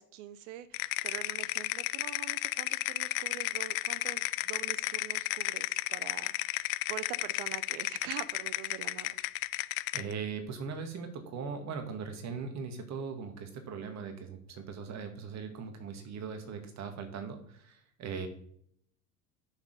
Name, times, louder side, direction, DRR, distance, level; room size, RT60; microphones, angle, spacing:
voice 1, 0.0-9.2, right 12 dB, 55° right, 15 dB, 0.7 m, -45 dB
sound 1, 0.7-10.1, left 20 dB, 40° left, 0.4 m, -33 dB
voice 2, 9.9-18.3, right 5 dB, 35° right, 5 dB, 2.0 m, -39 dB
8.0 x 6.6 x 5.3 m, 0.68 s
figure-of-eight pair, 80°, 46 cm